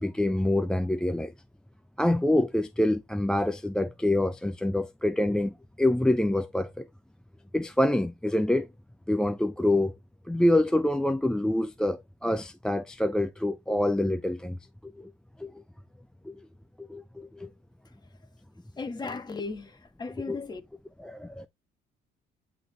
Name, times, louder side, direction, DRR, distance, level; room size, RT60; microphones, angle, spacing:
voice 1, 0.0-1.3 2.0-6.9 7.5-8.7 9.1-9.9 10.3-14.6 14.8-15.1 15.4-15.6 16.2-16.4 16.8-17.5 20.3-20.4 21.0-21.5, left 1 dB, 5° left, 0.4 m, -26 dB
voice 2, 18.8-20.6, left 4 dB, 25° left, 1.5 m, -36 dB
9.3 x 3.9 x 3.3 m
cardioid pair, 110°, 17 cm